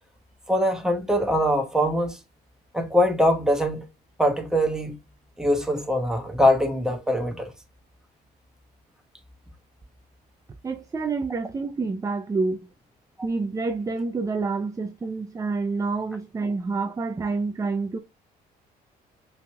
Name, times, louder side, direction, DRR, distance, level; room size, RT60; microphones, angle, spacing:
voice 1, 0.5-2.2 2.7-3.9 4.2-5.0 5.4-7.5, equal, 5° right, 1.1 m, -22 dB
voice 2, 10.6-12.7 13.2-18.0, right 4 dB, 20° right, 0.5 m, -28 dB
5.6 x 3.5 x 2.2 m
cardioid pair, 110°, 17 cm